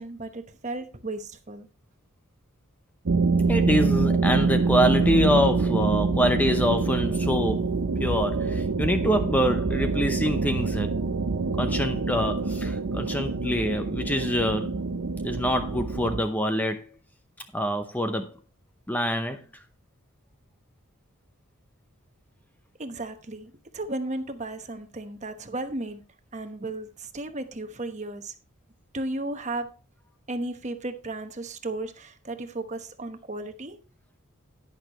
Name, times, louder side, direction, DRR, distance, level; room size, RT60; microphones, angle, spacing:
voice 1, 0.0-1.7 22.8-26.0 26.3-28.3 28.9-29.7 30.3-33.8, right 2 dB, 35° right, 1.1 m, -34 dB
sound 1, 3.1-16.2, right 4 dB, 65° right, 0.7 m, -25 dB
voice 2, 3.5-7.7 8.0-11.0 11.6-14.7 15.2-16.8 17.5-18.3 18.9-19.4, equal, 10° left, 0.7 m, -25 dB
11.0 x 10.0 x 3.1 m
head